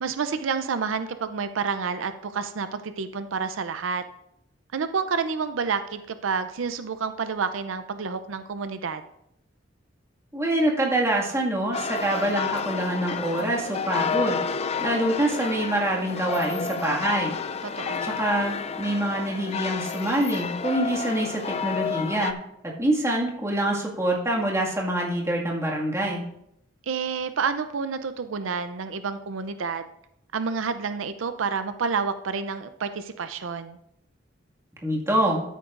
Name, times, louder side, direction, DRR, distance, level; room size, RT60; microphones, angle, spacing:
voice 1, 0.0-4.0 4.7-9.0 17.6-18.1 26.9-29.8 30.3-33.8, right 5 dB, 90° right, 10 dB, 0.5 m, -29 dB
voice 2, 10.3-14.4 14.8-17.3 18.0-22.3 22.6-26.2 34.8-35.4, right 1 dB, 15° right, -3 dB, 1.9 m, -25 dB
sound 1, 11.7-22.3, left 5 dB, 35° left, 0.4 m, -30 dB
13.0 x 9.1 x 2.5 m, 0.78 s
head